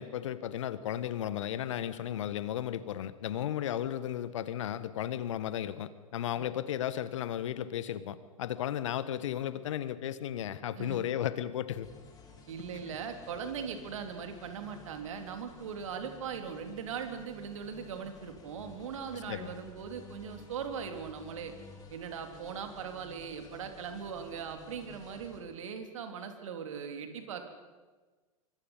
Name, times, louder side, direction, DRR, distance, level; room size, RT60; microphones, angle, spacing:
voice 1, 0.0-11.9 19.3-19.5, left 11 dB, 60° left, 15 dB, 1.3 m, -34 dB
sound 1, 11.8-25.4, left 4 dB, 20° left, 4.7 m, -54 dB
voice 2, 12.5-21.5 21.9-27.5, right 6 dB, 60° right, 6 dB, 3.1 m, -40 dB
25.5 x 24.5 x 5.6 m, 1.3 s
figure-of-eight pair, 95°, 18 cm